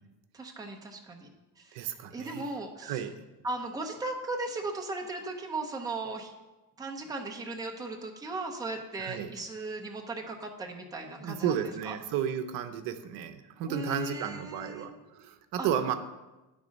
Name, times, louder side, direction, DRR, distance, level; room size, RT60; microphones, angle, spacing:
voice 1, 0.3-1.8 2.1-3.0 3.4-6.3 6.8-12.0 13.7-14.9 15.6-15.7, right 2 dB, 10° right, 2 dB, 0.7 m, -37 dB
voice 2, 1.7-2.5 2.8-3.2 9.0-9.3 11.2-15.9, right 9 dB, 75° right, 9 dB, 0.7 m, -33 dB
11.0 x 3.8 x 5.2 m, 1.1 s
cardioid pair, 155°, 34 cm